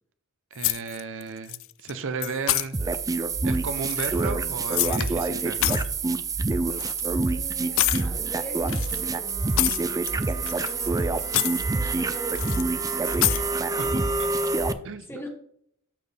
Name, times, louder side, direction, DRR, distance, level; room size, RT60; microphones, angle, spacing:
voice 1, 0.5-2.8 3.4-5.8 13.8-14.3 14.8-15.1, right 4 dB, 60° right, 10 dB, 0.6 m, -34 dB
sound 1, 0.6-1.2 1.5-1.9 2.2-2.7 3.8-5.1 5.4-5.9 6.8-7.0 7.8-8.1 8.7-10.1 10.5-11.0 11.2-11.6 12.3-12.6 13.1-13.4, left 16 dB, 60° left, 0.4 m, -27 dB
sound 2, 2.7-14.7, right 3 dB, 15° right, 0.3 m, -26 dB
voice 2, 7.0-13.5 13.7-13.9 14.4-14.7 15.1-15.3, right 1 dB, 10° left, 0 dB, 1.8 m, -41 dB
13.0 x 4.4 x 3.3 m, 0.66 s
head